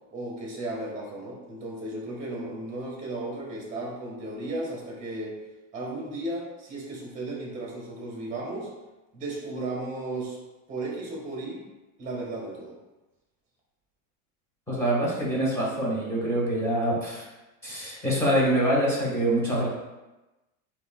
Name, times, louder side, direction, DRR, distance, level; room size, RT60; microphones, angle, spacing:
voice 1, 0.1-5.4 5.7-8.7 9.1-10.4 10.7-11.6 12.0-12.8, right 2 dB, 20° right, -2 dB, 1.3 m, -35 dB
voice 2, 14.7-17.2 17.6-19.7, right 1 dB, 5° left, -6 dB, 1.4 m, -25 dB
7.8 x 2.9 x 2.3 m, 1.1 s
supercardioid pair, 160°, 38 cm